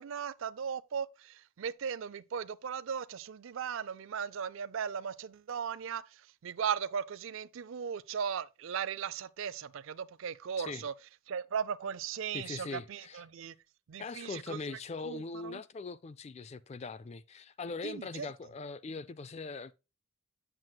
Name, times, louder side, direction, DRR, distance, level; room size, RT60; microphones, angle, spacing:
voice 1, 0.0-10.9 11.3-13.5 13.9-15.6 17.8-18.3, right 7 dB, 60° right, 0.4 m, -37 dB
voice 2, 12.3-13.2 14.0-19.7, left 4 dB, 30° left, 0.3 m, -41 dB
7.7 x 7.5 x 2.2 m
head